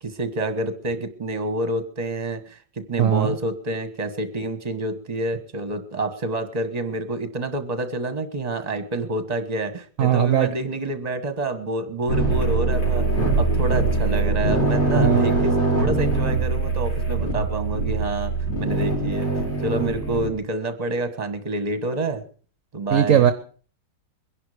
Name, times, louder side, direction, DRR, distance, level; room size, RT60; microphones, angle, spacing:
voice 1, 0.0-13.1 13.4-18.3 18.6-19.3 19.6-22.2 22.7-23.3, right 2 dB, 25° right, 9 dB, 1.4 m, -28 dB
voice 2, 3.0-3.4 10.0-10.5 14.9-15.3 22.9-23.3, right 9 dB, 55° right, 10 dB, 1.1 m, -19 dB
sound 1, 12.1-20.3, right 3 dB, 80° left, 5.9 m, -22 dB
22.0 x 11.0 x 5.0 m, 0.43 s
omnidirectional pair, 2.0 m